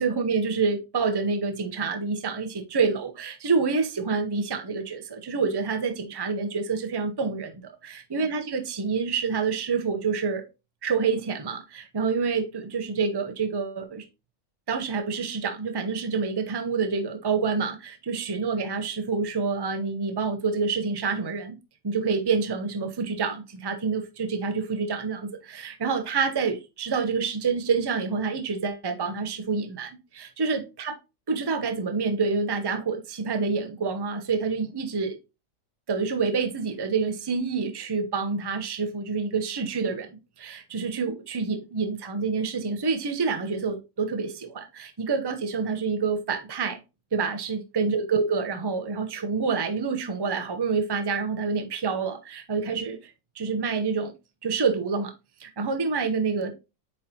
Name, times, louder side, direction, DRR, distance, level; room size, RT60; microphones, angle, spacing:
voice 1, 0.0-10.4 10.8-14.1 14.7-21.6 21.8-30.9 31.3-35.2 35.9-40.1 40.4-46.8 47.1-54.1 54.4-55.1 55.4-56.5, right 5 dB, 30° right, 0.4 m, -27 dB
8.3 x 4.4 x 2.8 m
omnidirectional pair, 2.0 m